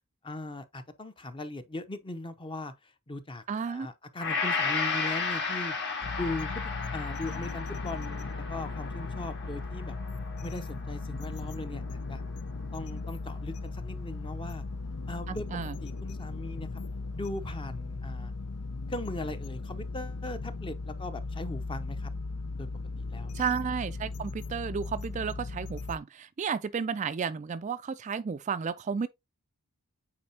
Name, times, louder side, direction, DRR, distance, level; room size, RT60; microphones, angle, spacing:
voice 1, 0.2-5.7 6.1-6.6 6.9-9.9 10.4-12.2 12.7-14.7 15.1-15.5 15.8-16.8 17.1-18.3 18.9-22.1 22.5-22.7 23.0-23.4, left 2 dB, 25° left, 0.7 m, -39 dB
voice 2, 3.5-3.9 15.3-15.7 23.3-29.1, right 6 dB, 35° right, 0.3 m, -32 dB
Gong, 4.2-12.5 13.0-13.1, left 4 dB, 55° left, 2.1 m, -34 dB
sound 1, 6.0-26.0, left 3 dB, 85° left, 0.6 m, -37 dB
8.6 x 4.3 x 2.8 m
head